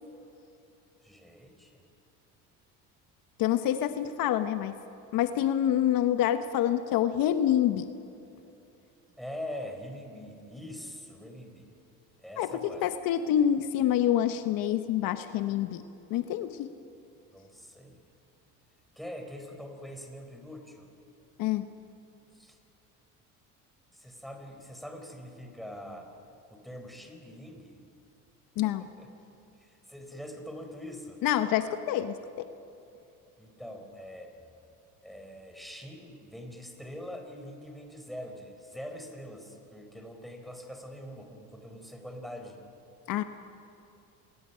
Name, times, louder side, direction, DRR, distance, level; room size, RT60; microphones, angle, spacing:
voice 1, 1.0-1.9 9.2-11.7 12.2-12.8 17.3-18.0 19.0-20.9 22.3-22.6 23.9-26.1 26.5-27.8 28.6-28.7 29.0-29.1 29.6-31.2 33.4-34.3 35.0-42.6, equal, ahead, 3 dB, 4.3 m, -43 dB
voice 2, 3.4-4.7 5.1-7.9 12.4-15.8 16.1-16.7 21.4-21.7 28.6-28.9 31.2-32.5 43.1-43.2, left 11 dB, 70° left, 9 dB, 1.0 m, -27 dB
28.0 x 20.5 x 5.7 m, 2.7 s
supercardioid pair, 100°, 36 cm